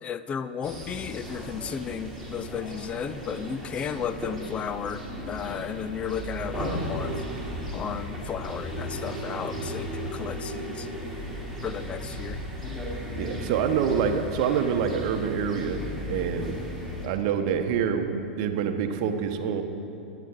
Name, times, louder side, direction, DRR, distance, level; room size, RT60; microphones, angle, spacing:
voice 1, 0.0-7.2 7.7-10.9 11.6-12.4, left 7 dB, 20° left, 13 dB, 0.5 m, -34 dB
sound 1, 0.6-17.1, equal, 5° left, 3.3 m, -35 dB
voice 2, 13.1-15.8 16.1-16.5 17.0-19.6, right 7 dB, 45° right, 7 dB, 1.0 m, -26 dB
21.0 x 9.2 x 3.7 m, 2.7 s
figure-of-eight pair, 95°, 5 cm